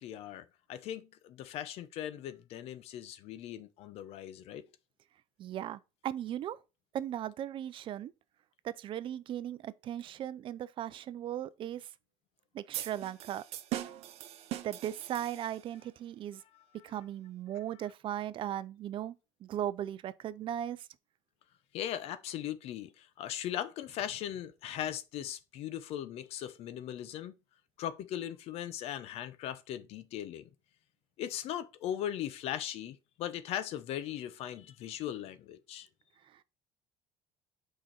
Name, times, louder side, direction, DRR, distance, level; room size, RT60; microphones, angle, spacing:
voice 1, 0.0-4.6 21.7-27.3 27.8-30.5 31.2-35.9, left 11 dB, 65° left, 0.8 m, -39 dB
voice 2, 5.4-6.6 6.9-8.1 8.6-11.9 12.5-13.4 14.6-16.4 16.8-19.1 19.4-20.9 36.3-36.4, right 11 dB, 50° right, 0.5 m, -37 dB
sound 1, 12.7-15.8, right 14 dB, 65° right, 0.9 m, -41 dB
6.3 x 5.1 x 4.2 m
cardioid pair, 110°, 11 cm